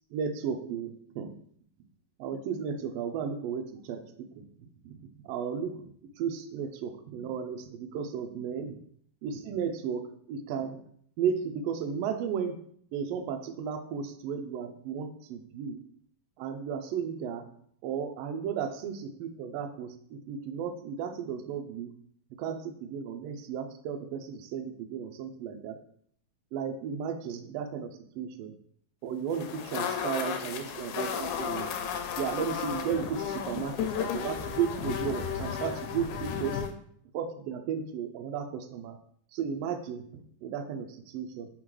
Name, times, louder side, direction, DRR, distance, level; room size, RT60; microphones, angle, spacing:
voice 1, 0.1-1.3 2.2-4.0 4.8-8.7 9.2-10.8 11.2-12.6 12.9-15.8 16.4-17.4 17.8-21.9 22.4-25.8 26.5-28.5 29.0-31.7 32.2-36.6 37.1-39.0 39.3-41.5, right 7 dB, 85° right, 6 dB, 1.4 m, -34 dB
sound 1, 29.3-36.7, left 7 dB, 85° left, 1.9 m, -34 dB
4.2 x 3.7 x 3.0 m, 0.64 s
omnidirectional pair, 3.4 m